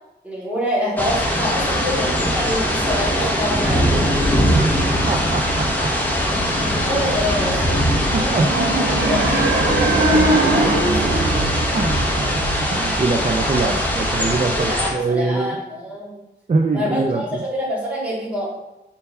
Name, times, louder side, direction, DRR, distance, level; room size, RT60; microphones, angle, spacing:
voice 1, 0.2-4.3 6.6-7.8 8.1-8.6 9.0-11.5 14.6-16.2 16.7-18.5, left 1 dB, 5° right, -6 dB, 2.6 m, -26 dB
sound 1, 1.0-14.9, equal, 10° left, 1.2 m, -21 dB
voice 2, 4.5-5.9 8.1-8.5 11.7-15.6 16.5-17.4, right 3 dB, 35° right, 2 dB, 0.5 m, -23 dB
sound 2, 8.4-12.5, right 2 dB, 90° right, 1.1 m, -21 dB
5.4 x 4.5 x 5.4 m, 0.94 s
wide cardioid pair, 115°, 19 cm